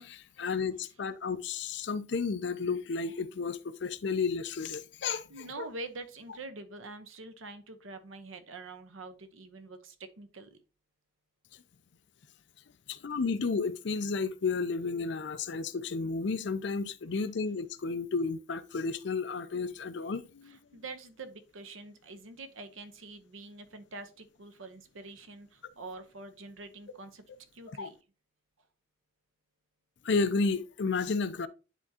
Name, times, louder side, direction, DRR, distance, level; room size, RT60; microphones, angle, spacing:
voice 1, 0.0-5.2 5.6-5.7 12.9-20.6 27.8-27.9 30.0-31.5, left 4 dB, 60° left, 0.5 m, -32 dB
voice 2, 5.3-10.6 20.4-27.2 27.5-28.0, right 3 dB, 90° right, 0.9 m, -45 dB
10.0 x 3.6 x 2.8 m
head